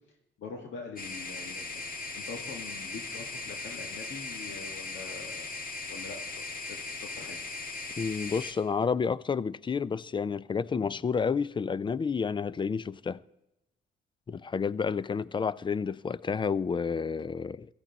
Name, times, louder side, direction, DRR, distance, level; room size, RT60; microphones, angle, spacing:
voice 1, 0.4-1.8 2.1-5.5 5.9-7.4, left 4 dB, 70° left, 1.8 m, -44 dB
sound 1, 1.0-8.5, left 3 dB, 45° left, 1.9 m, -38 dB
voice 2, 8.0-13.2 14.3-17.7, left 5 dB, 25° left, 0.4 m, -30 dB
16.5 x 13.5 x 4.0 m
cardioid pair, 90°, 20 cm